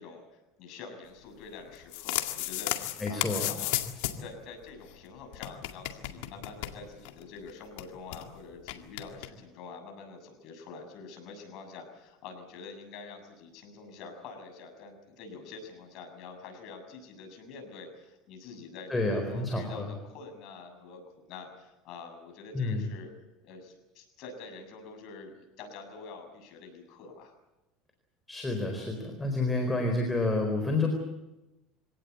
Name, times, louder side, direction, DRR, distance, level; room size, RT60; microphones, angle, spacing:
voice 1, 0.0-3.8 4.2-23.1 23.4-27.3, left 4 dB, 55° left, 4 dB, 7.1 m, -46 dB
sound 1, 1.7-4.3 4.6-4.7 4.9-5.0 5.3-7.2 7.5-7.6 7.8-8.2 8.7-9.3, left 15 dB, 80° left, 2.0 m, -34 dB
voice 2, 3.0-3.5 18.9-19.9 22.5-22.8 28.3-30.9, left 2 dB, 10° left, 3 dB, 4.3 m, -29 dB
25.5 x 18.0 x 8.3 m, 1.0 s
supercardioid pair, 130°, 0 cm